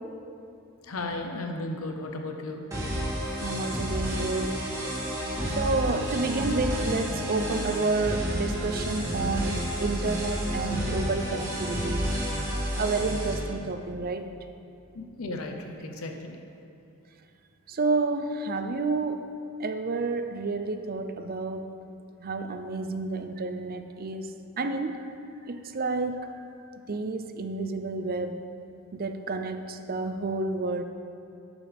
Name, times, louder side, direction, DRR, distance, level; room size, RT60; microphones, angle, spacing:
voice 1, 0.8-2.7 14.9-16.4, left 2 dB, 85° left, 4 dB, 0.9 m, -35 dB
sound 1, 2.7-13.4, equal, 15° right, 2.3 m, -30 dB
voice 2, 3.4-4.6 5.4-12.0 12.8-14.3 17.7-19.2 19.6-21.8 22.2-25.0 25.5-26.3 26.7-28.4 28.9-30.8, right 3 dB, 45° right, 7 dB, 0.6 m, -30 dB
11.0 x 9.1 x 3.5 m, 2.6 s
head